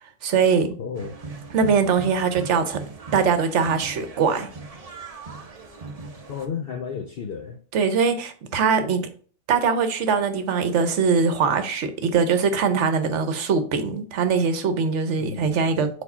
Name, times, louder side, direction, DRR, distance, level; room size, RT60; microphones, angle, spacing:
voice 1, 0.2-0.7 1.5-2.8 3.1-4.5 7.7-9.0 9.5-16.0, right 5 dB, 60° right, 1.1 m, -22 dB
voice 2, 0.8-1.1 6.3-7.6 15.2-15.8, left 6 dB, 60° left, 0.6 m, -33 dB
sound 1, 0.9-6.5, right 3 dB, 35° right, 0.7 m, -39 dB
4.8 x 4.2 x 5.4 m
omnidirectional pair, 1.5 m